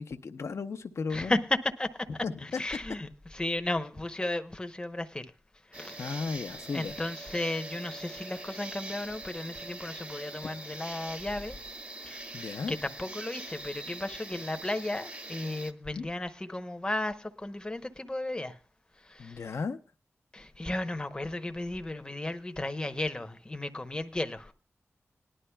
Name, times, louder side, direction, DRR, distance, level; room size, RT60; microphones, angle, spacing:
voice 1, 0.0-1.4 2.2-2.6 6.0-6.9 12.3-12.8 16.0-16.1 19.2-19.8, left 4 dB, 75° left, 0.8 m, -35 dB
voice 2, 1.1-2.1 2.4-5.3 5.7-6.1 6.7-11.6 12.0-12.3 12.7-18.6 19.0-19.5 20.3-24.5, left 1 dB, 20° left, 0.8 m, -34 dB
sound 1, 5.7-15.7, right 2 dB, 30° right, 1.0 m, -43 dB
19.0 x 11.0 x 2.2 m
wide cardioid pair, 105°, 5 cm